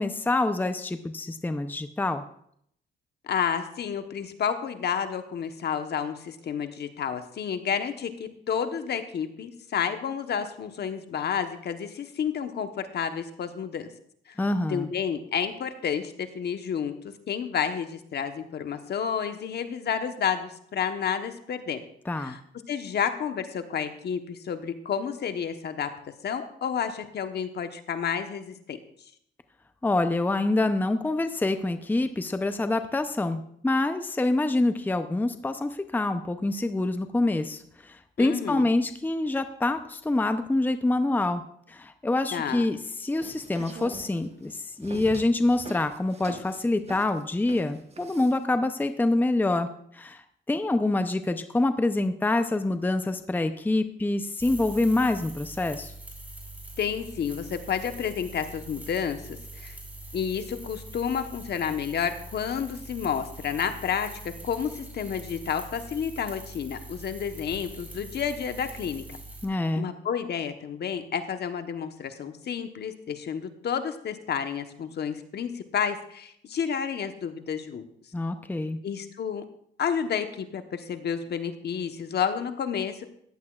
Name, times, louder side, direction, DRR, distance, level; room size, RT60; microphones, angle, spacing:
voice 1, 0.0-2.2 14.4-14.9 22.1-22.4 29.8-41.4 41.7-49.7 49.9-50.2 50.5-55.9 69.4-69.8 78.1-78.8, left 2 dB, 10° left, 9 dB, 0.6 m, -26 dB
voice 2, 3.2-13.9 14.7-21.8 22.2-22.4 22.7-25.9 26.2-28.8 38.2-38.7 42.3-42.7 56.8-59.8 60.1-69.1 69.7-77.8 78.8-79.4 79.8-83.0, left 7 dB, 55° left, 8 dB, 1.1 m, -30 dB
sound 1, 43.0-48.4, right 4 dB, 30° right, 1.2 m, -44 dB
sound 2, 54.4-69.4, right 2 dB, 10° right, 2.7 m, -43 dB
15.0 x 10.5 x 2.4 m, 0.68 s
cardioid pair, 90°, 20 cm